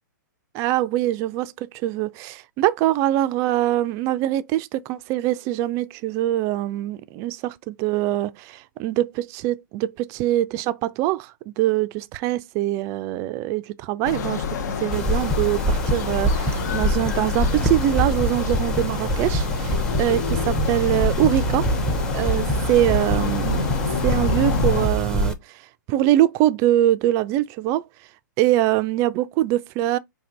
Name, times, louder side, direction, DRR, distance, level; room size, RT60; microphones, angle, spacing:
voice 1, 0.5-21.7 22.1-23.7 24.0-25.6 25.9-27.8 28.4-30.0, right 14 dB, 30° right, 0.4 m, -23 dB
sound 1, 14.0-24.9, left 5 dB, 60° left, 0.7 m, -28 dB
sound 2, 14.9-25.3, right 1 dB, 5° left, 0.7 m, -24 dB
4.4 x 2.8 x 3.7 m
hypercardioid pair, 130°, 11 cm